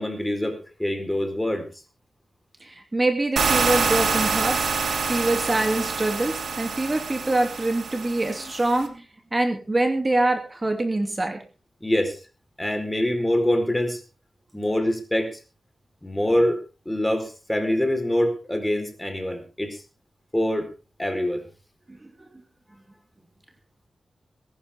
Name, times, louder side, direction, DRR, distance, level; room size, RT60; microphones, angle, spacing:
voice 1, 0.0-1.7 11.8-12.2 12.6-14.0 14.5-15.4 16.0-16.6 16.9-19.8 20.3-20.7 21.0-21.4, left 1 dB, 10° left, 6 dB, 4.2 m, -24 dB
voice 2, 2.6-4.7 5.1-9.1 9.3-11.4 21.9-22.3, right 2 dB, 30° right, 5 dB, 2.7 m, -25 dB
sound 1, 3.4-8.9, right 5 dB, 75° right, 2.8 m, -26 dB
21.5 x 12.0 x 3.6 m, 0.34 s
cardioid pair, 75°, 0 cm